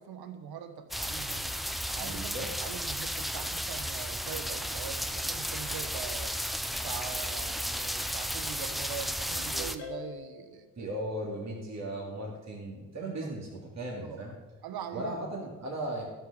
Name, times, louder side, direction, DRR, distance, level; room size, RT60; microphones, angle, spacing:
voice 1, 0.0-1.6 1.9-6.3 6.7-10.9 13.2-13.3 14.0-14.2 14.6-15.5, right 8 dB, 60° right, 10 dB, 1.2 m, -42 dB
sound 1, 0.9-9.8, equal, ahead, 0.7 m, -34 dB
voice 2, 2.0-2.5 10.8-14.3 14.9-16.0, right 1 dB, 40° right, -3 dB, 2.9 m, -37 dB
Ringtone, 9.3-10.5, left 5 dB, 70° left, 3.0 m, -43 dB
12.0 x 6.1 x 6.9 m, 1.3 s
hypercardioid pair, 50°, 42 cm